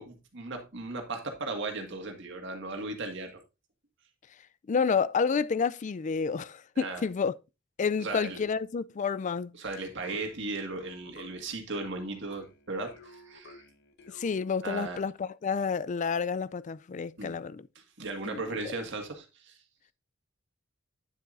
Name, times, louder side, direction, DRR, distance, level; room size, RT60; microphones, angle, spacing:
voice 1, 0.0-3.3 6.8-7.0 8.0-8.4 9.6-13.6 14.6-15.0 17.2-17.4 18.0-19.6, right 3 dB, 60° right, 1.9 m, -36 dB
voice 2, 4.7-7.3 7.8-9.6 14.1-17.7 18.3-18.7, left 5 dB, 35° left, 0.3 m, -30 dB
sound 1, 10.0-14.8, left 1 dB, 55° left, 1.1 m, -53 dB
9.2 x 7.7 x 2.6 m
head